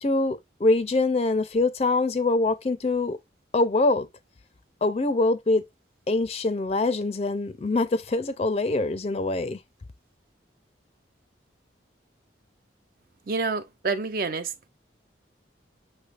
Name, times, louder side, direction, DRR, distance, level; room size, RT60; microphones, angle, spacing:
voice 1, 0.0-3.2 3.5-4.1 4.8-5.7 6.1-9.6, left 2 dB, 35° left, 0.4 m, -24 dB
voice 2, 13.3-14.5, right 4 dB, 50° right, 0.5 m, -28 dB
6.0 x 3.2 x 2.4 m
head